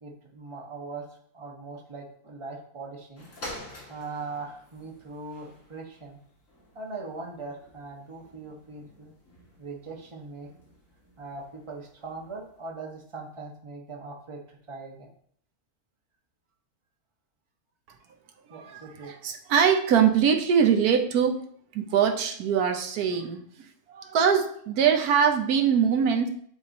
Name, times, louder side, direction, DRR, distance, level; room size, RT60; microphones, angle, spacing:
voice 1, 0.0-1.1 1.3-3.2 3.9-6.2 6.7-9.1 9.6-10.5 11.2-15.1 18.5-19.1, right 3 dB, 20° right, -1 dB, 1.1 m, -40 dB
sound 1, 3.1-12.7 13.4-13.5, left 1 dB, 55° left, 2.4 m, -49 dB
voice 2, 18.6-21.4 21.7-23.4 23.9-26.3, right 7 dB, 90° right, 4 dB, 1.3 m, -23 dB
9.6 x 3.2 x 4.1 m, 0.62 s
omnidirectional pair, 1.6 m